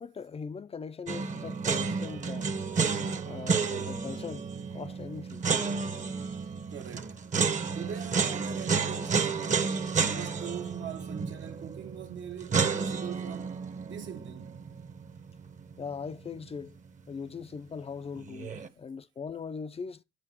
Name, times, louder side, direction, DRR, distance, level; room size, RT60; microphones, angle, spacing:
voice 1, 0.0-2.5 3.2-5.4 15.8-16.8 17.1-20.0, left 5 dB, 30° left, 0.4 m, -40 dB
sound 1, 1.1-16.1 16.3-16.4 18.2-18.7, right 5 dB, 40° right, 0.9 m, -31 dB
voice 2, 6.7-7.3 7.7-13.6 13.8-14.6 18.7-18.8, right 9 dB, 70° right, 1.2 m, -42 dB
9.1 x 7.7 x 2.8 m
cardioid pair, 90°, 20 cm